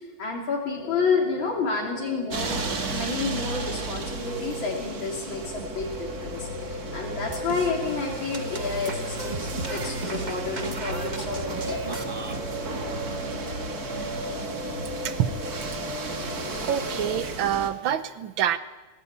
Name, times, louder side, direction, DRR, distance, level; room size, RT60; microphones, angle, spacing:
voice 1, 0.0-12.0, left 4 dB, 75° left, -2 dB, 3.7 m, -30 dB
sound 1, 0.7-17.2, left 2 dB, 50° left, 5.4 m, -38 dB
sound 2, 2.3-17.7, right 3 dB, 50° right, 2.2 m, -34 dB
sound 3, 7.3-7.7 8.2-12.4, right 3 dB, 25° right, 1.2 m, -37 dB
voice 2, 16.6-18.6, right 10 dB, 75° right, 12 dB, 1.7 m, -26 dB
21.0 x 16.5 x 8.7 m, 1.2 s
omnidirectional pair, 2.2 m